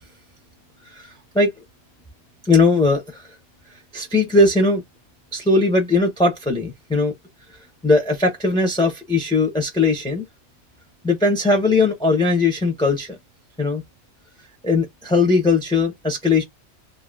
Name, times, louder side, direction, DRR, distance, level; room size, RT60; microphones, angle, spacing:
voice 1, 2.4-3.2 3.9-4.8 5.3-7.1 7.8-10.2 11.0-13.1 13.6-13.8 14.6-16.4, left 3 dB, 5° left, 0.8 m, -19 dB
2.9 x 2.7 x 2.6 m
omnidirectional pair, 1.1 m